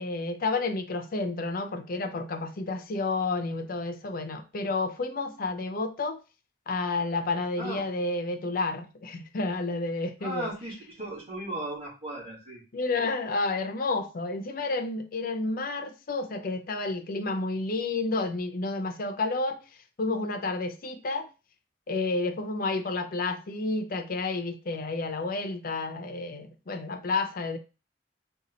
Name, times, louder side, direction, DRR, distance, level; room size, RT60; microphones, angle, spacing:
voice 1, 0.0-6.2 6.7-10.5 12.7-19.6 20.0-21.3 21.9-27.6, left 3 dB, 50° left, 0.6 m, -30 dB
voice 2, 10.2-12.6, right 1 dB, 30° right, 2.3 m, -36 dB
4.1 x 2.4 x 3.9 m
head